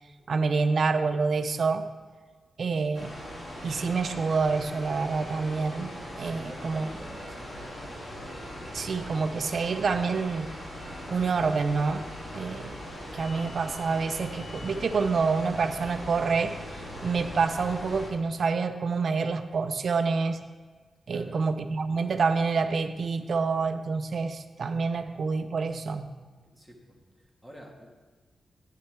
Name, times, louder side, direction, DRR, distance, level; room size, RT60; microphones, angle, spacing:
voice 1, 0.3-1.9 2.6-3.1 3.6-5.9 6.2-6.9 8.7-10.5 11.1-12.0 12.3-12.8 13.1-16.6 17.0-20.4 21.1-26.1, right 4 dB, 55° right, 9 dB, 0.6 m, -27 dB
sound 1, 2.9-18.1, equal, 30° left, 2.4 m, -40 dB
voice 2, 6.1-7.9 21.1-21.4 26.5-27.9, equal, 5° left, -1 dB, 1.6 m, -48 dB
11.0 x 10.0 x 3.4 m, 1.4 s
wide cardioid pair, 140°, 0 cm